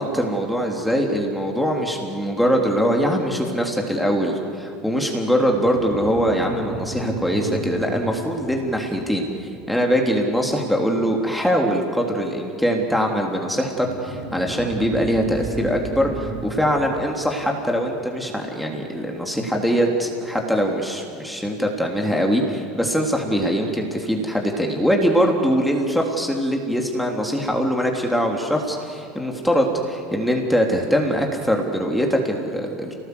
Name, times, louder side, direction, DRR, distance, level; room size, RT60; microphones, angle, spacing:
voice 1, 0.0-9.2 9.7-32.9, equal, ahead, 0 dB, 3.4 m, -22 dB
sound 1, 5.4-10.3 13.7-18.6, right 1 dB, 50° right, 5.2 m, -34 dB
28.0 x 19.0 x 8.1 m, 2.4 s
hypercardioid pair, 75°, 0 cm